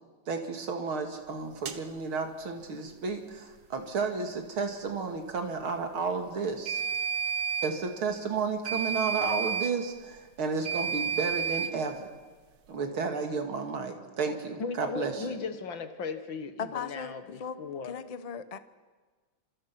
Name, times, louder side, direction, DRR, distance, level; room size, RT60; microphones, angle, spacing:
voice 1, 0.3-6.8 7.6-12.1 12.7-15.2, right 4 dB, 85° right, 5 dB, 3.2 m, -32 dB
sound 1, 1.7-1.8 6.7-7.7 8.6-9.7 10.6-11.7, right 7 dB, 60° right, 1.8 m, -30 dB
voice 2, 14.6-18.0, left 5 dB, 70° left, 9 dB, 2.3 m, -37 dB
voice 3, 16.6-17.1 17.4-17.6 17.9-18.6, left 6 dB, 35° left, 12 dB, 0.6 m, -37 dB
28.0 x 27.0 x 6.0 m, 1.4 s
omnidirectional pair, 2.2 m